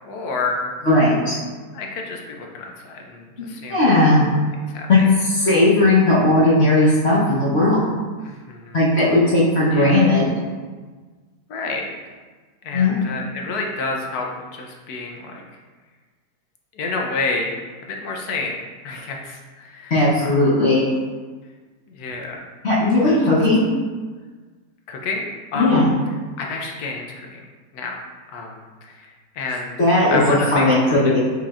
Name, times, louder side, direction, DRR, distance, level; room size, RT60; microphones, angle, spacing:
voice 1, 0.0-0.7 1.7-3.9 4.7-5.1 8.2-8.8 9.7-10.0 11.5-11.9 12.6-14.3 14.5-15.4 16.7-20.4 21.9-22.4 23.0-23.4 24.9-25.9 26.4-27.4 27.7-28.0 28.3-29.8 30.1-31.1, left 3 dB, 70° left, 1 dB, 1.1 m, -29 dB
voice 2, 0.9-1.4 3.7-4.3 4.9-7.8 8.7-10.3 12.7-13.0 19.9-20.9 22.6-23.7 25.5-25.9 29.8-31.2, left 2 dB, 45° left, -8 dB, 1.0 m, -16 dB
4.8 x 4.0 x 2.4 m, 1.4 s
omnidirectional pair, 1.8 m